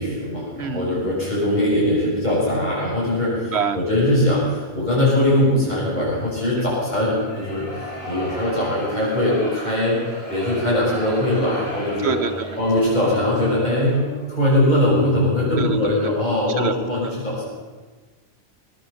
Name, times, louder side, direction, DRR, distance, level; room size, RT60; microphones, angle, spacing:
voice 1, 0.0-10.0 10.3-12.1 12.6-14.0 14.3-17.5, left 1 dB, 45° left, -7 dB, 7.2 m, -21 dB
voice 2, 0.6-1.1 3.4-3.8 6.5-6.7 9.9-10.1 12.0-12.6 15.6-15.8 16.5-16.8 17.0-17.1, right 6 dB, 80° right, 9 dB, 1.4 m, -26 dB
sound 1, 7.1-14.3, left 1 dB, 70° left, 4.1 m, -36 dB
20.5 x 9.8 x 7.1 m, 1.3 s
omnidirectional pair, 1.1 m